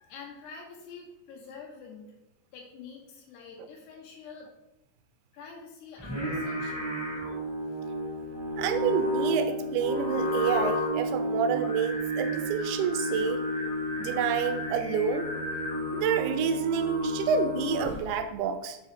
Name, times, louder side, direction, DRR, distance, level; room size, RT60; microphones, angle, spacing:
voice 1, 0.0-2.1 2.5-4.5 5.3-7.2, left 5 dB, 70° left, -2 dB, 3.7 m, -47 dB
Singing, 6.0-18.2, equal, 10° right, 1.5 m, -31 dB
voice 2, 8.6-13.4 14.0-15.3 15.9-18.8, right 7 dB, 80° right, 9 dB, 2.4 m, -28 dB
7.3 x 6.5 x 4.1 m, 0.94 s
omnidirectional pair, 5.1 m